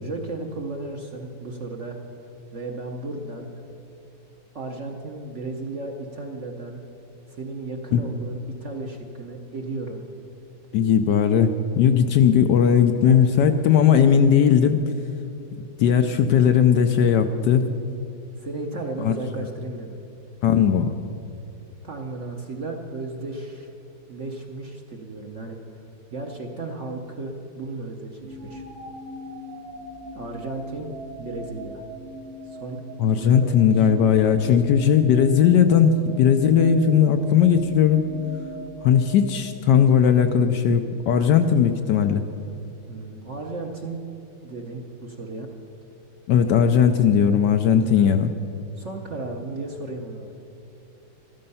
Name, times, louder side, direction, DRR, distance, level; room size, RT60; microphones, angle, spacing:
voice 1, 0.0-2.0 2.5-3.7 4.5-6.8 7.3-10.0 13.0-13.3 18.4-20.0 21.8-23.7 24.1-25.6 26.1-28.6 30.1-30.9 31.2-31.8 32.4-32.8 33.1-33.9 42.9-44.0 44.4-45.5 48.8-50.3, right 2 dB, 50° right, 2 dB, 1.0 m, -34 dB
voice 2, 10.7-14.8 15.8-17.7 19.0-19.1 20.4-20.9 33.0-38.0 38.8-42.2 46.3-48.3, left 8 dB, 70° left, 8 dB, 1.1 m, -18 dB
sound 1, 28.2-40.3, right 1 dB, 85° right, 2.6 m, -40 dB
13.5 x 13.0 x 5.5 m, 2.7 s
omnidirectional pair, 2.2 m